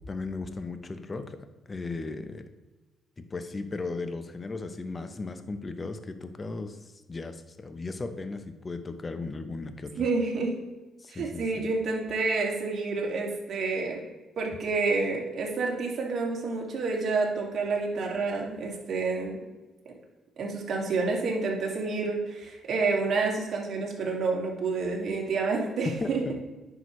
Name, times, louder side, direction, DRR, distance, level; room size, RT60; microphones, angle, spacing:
voice 1, 0.1-2.5 3.2-6.8 7.1-10.1 11.0-11.6 26.0-26.1, left 3 dB, 30° left, 9 dB, 0.7 m, -36 dB
voice 2, 10.0-10.5 11.1-14.0 14.4-19.4 20.4-26.2, right 3 dB, 55° right, -2 dB, 2.2 m, -29 dB
9.5 x 6.1 x 3.1 m, 1.2 s
cardioid pair, 90°, 0 cm